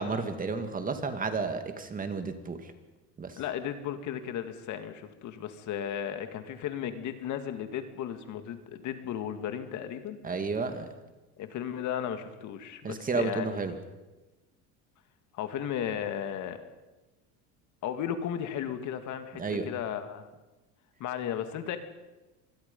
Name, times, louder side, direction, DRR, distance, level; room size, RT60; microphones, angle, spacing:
voice 1, 0.0-2.7 3.2-3.4 10.2-10.9 12.8-13.7 19.4-19.7, right 4 dB, 25° right, 8 dB, 2.1 m, -32 dB
voice 2, 3.4-10.2 11.4-13.7 15.3-16.6 17.8-20.3 21.0-21.8, left 9 dB, 55° left, 8 dB, 2.2 m, -35 dB
25.5 x 21.0 x 5.5 m, 1.1 s
cardioid pair, 130°, 35 cm